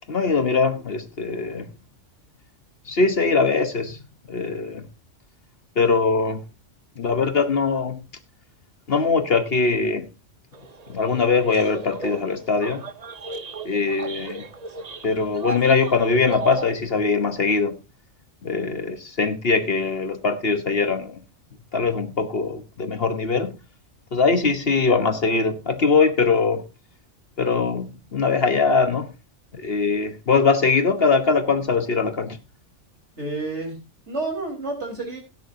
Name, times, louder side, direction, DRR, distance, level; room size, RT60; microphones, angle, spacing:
voice 1, 0.1-1.7 2.9-4.0 4.3-4.8 5.8-6.4 7.0-8.0 8.9-10.1 10.9-12.8 13.6-14.5 15.0-17.7 18.4-21.2 21.7-23.6 24.1-26.6 27.4-29.1 29.5-32.4, left 4 dB, 50° left, 1.3 m, -21 dB
sound 1, 10.5-16.6, right 3 dB, 35° right, 0.9 m, -36 dB
voice 2, 33.2-33.8 34.1-35.2, right 3 dB, 60° right, 4.8 m, -29 dB
17.0 x 9.6 x 2.8 m
omnidirectional pair, 1.3 m